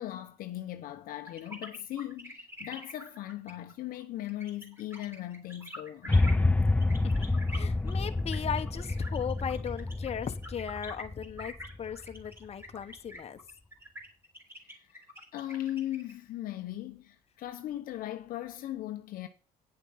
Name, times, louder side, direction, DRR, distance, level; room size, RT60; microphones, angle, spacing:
voice 1, 0.0-6.2 14.6-15.0 15.3-19.3, left 13 dB, 70° left, 0.9 m, -38 dB
sound 1, 1.3-16.1, left 1 dB, 15° right, 3.5 m, -46 dB
sound 2, 6.1-12.3, left 2 dB, 10° left, 0.4 m, -28 dB
voice 2, 7.5-11.5 11.8-13.4, left 8 dB, 40° left, 1.1 m, -37 dB
9.9 x 7.0 x 5.7 m
cardioid pair, 90°, 16 cm